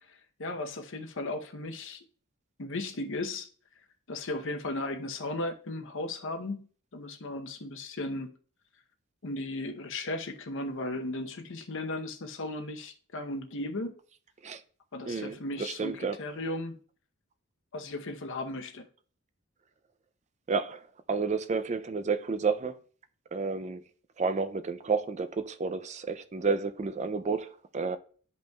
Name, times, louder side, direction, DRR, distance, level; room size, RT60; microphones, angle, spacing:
voice 1, 0.1-2.0 2.6-3.5 4.1-6.6 6.9-8.3 9.2-13.9 14.9-16.8 17.7-18.8, left 2 dB, 60° left, 0.8 m, -36 dB
voice 2, 15.1-16.2 20.5-22.8 23.3-23.8 24.2-28.0, right 4 dB, 30° right, 0.4 m, -31 dB
12.0 x 5.2 x 2.3 m
head